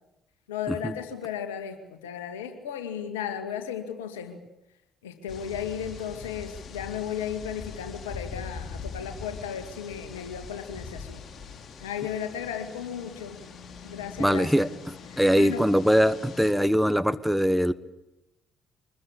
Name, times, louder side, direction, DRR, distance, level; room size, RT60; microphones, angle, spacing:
voice 1, 0.5-4.4 5.0-11.2 11.8-13.4 13.8-14.7 15.1-15.7, left 8 dB, 75° left, 8 dB, 2.2 m, -35 dB
sound 1, 5.3-16.5, left 5 dB, 50° left, 3.8 m, -42 dB
voice 2, 14.2-17.7, equal, ahead, 14 dB, 1.2 m, -22 dB
24.5 x 21.0 x 8.6 m, 0.91 s
figure-of-eight pair, 45°, 0 cm